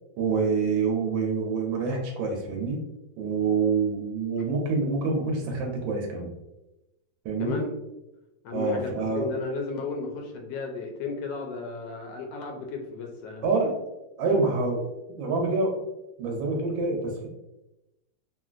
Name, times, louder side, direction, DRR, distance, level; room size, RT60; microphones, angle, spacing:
voice 1, 0.2-2.8 3.2-6.3 7.2-7.6 8.5-9.3 13.4-13.7 14.2-14.9 15.2-15.8 16.2-17.3, right 4 dB, 80° right, 1 dB, 1.3 m, -26 dB
voice 2, 7.4-7.8 8.4-8.9 9.1-13.5, left 3 dB, 75° left, 1 dB, 1.2 m, -33 dB
3.1 x 2.6 x 2.4 m, 0.95 s
omnidirectional pair, 2.1 m